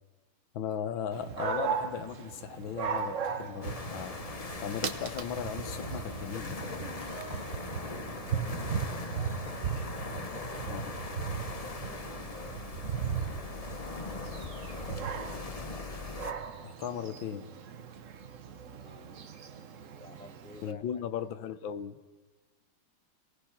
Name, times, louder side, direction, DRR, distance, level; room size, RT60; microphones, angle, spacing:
voice 1, 0.5-4.2 4.6-6.6 10.7-10.8 16.6-17.5 20.6-22.0, left 8 dB, 75° left, 12 dB, 1.6 m, -37 dB
Dog, 1.1-20.7, right 7 dB, 50° right, 1.1 m, -38 dB
sound 1, 3.6-16.3, left 4 dB, 50° left, 0.4 m, -40 dB
voice 2, 8.2-9.4 9.9-10.9 11.2-13.0 14.5-15.3 18.8-19.1 19.9-20.8, left 2 dB, 5° left, 8 dB, 0.7 m, -50 dB
29.0 x 18.5 x 5.8 m, 1.2 s
omnidirectional pair, 2.2 m